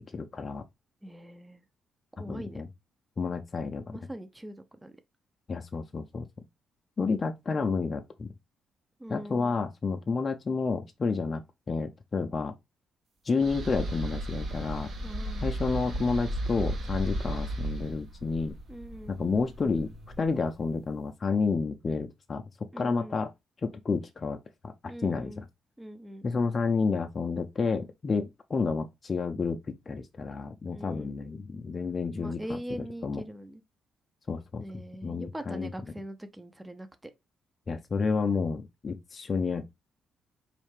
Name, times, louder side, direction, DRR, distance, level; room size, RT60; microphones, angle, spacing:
voice 1, 0.1-0.6 2.2-2.7 3.2-3.8 5.5-6.3 7.0-8.3 9.1-11.4 11.7-12.5 13.2-14.9 15.4-18.6 19.1-19.9 20.2-22.4 22.8-23.3 23.6-24.4 25.0-25.4 26.2-33.2 34.3-35.7 37.7-39.7, left 4 dB, 35° left, 0.5 m, -30 dB
voice 2, 1.0-1.6 2.2-2.6 3.9-4.9 9.0-9.5 15.0-15.5 18.7-19.2 22.7-23.2 24.9-25.4 25.8-26.5 30.7-31.2 32.2-33.6 34.6-36.9, right 1 dB, 10° right, 0.5 m, -42 dB
sound 1, 13.4-20.5, right 1 dB, 65° right, 1.7 m, -35 dB
4.2 x 3.2 x 3.2 m
cardioid pair, 90°, 0 cm